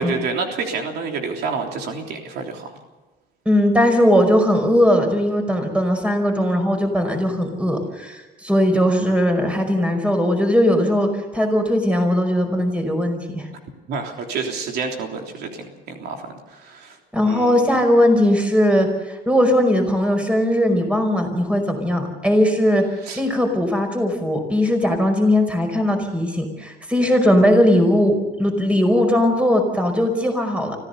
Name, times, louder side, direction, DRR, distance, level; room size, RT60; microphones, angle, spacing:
voice 1, 0.0-2.7 13.9-17.0 17.2-17.6 23.0-23.2, right 4 dB, 75° right, 2 dB, 3.4 m, -28 dB
voice 2, 3.4-13.5 17.1-22.8 23.2-30.8, equal, 5° right, 4 dB, 5.2 m, -19 dB
25.5 x 15.5 x 6.8 m, 1.2 s
cardioid pair, 110°, 17 cm